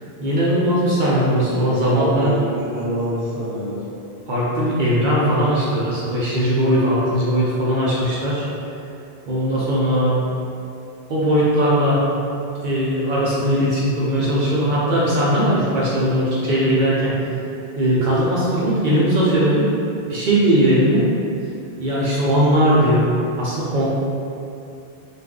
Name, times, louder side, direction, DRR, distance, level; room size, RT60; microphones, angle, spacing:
voice 1, 0.2-2.3 4.3-8.4 9.3-10.2 11.1-12.0 12.6-17.1 17.7-19.7 20.1-21.1 21.8-23.0 23.4-23.9, equal, 60° right, -7 dB, 0.6 m, -19 dB
voice 2, 1.3-3.8, equal, 45° left, -11 dB, 0.8 m, -27 dB
2.5 x 2.3 x 3.5 m, 2.7 s
omnidirectional pair, 1.1 m